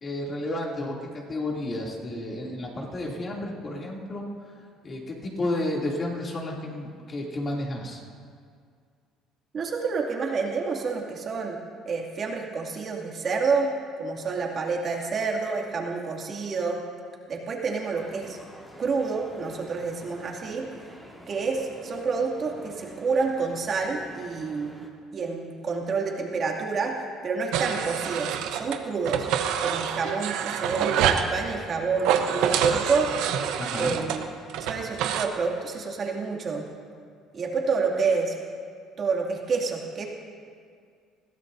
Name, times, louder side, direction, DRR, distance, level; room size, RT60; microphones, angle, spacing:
voice 1, 0.0-1.0 1.3-4.2 4.8-8.0 33.6-33.9, left 1 dB, 35° left, -2 dB, 2.7 m, -31 dB
voice 2, 9.5-11.6 11.9-13.7 14.0-16.8 17.3-18.4 18.8-20.9 21.3-24.8 25.1-26.9 27.2-29.3 29.6-33.1 33.7-34.3 34.6-36.6 37.3-38.3 39.0-40.1, right 4 dB, 40° right, -1 dB, 2.4 m, -28 dB
sound 1, 17.9-24.9, equal, 5° left, 1.8 m, -49 dB
sound 2, 27.5-28.8 29.1-31.3 32.0-35.3, right 9 dB, 75° right, 0.9 m, -27 dB
21.5 x 15.5 x 2.7 m, 2.2 s
cardioid pair, 105°, 0 cm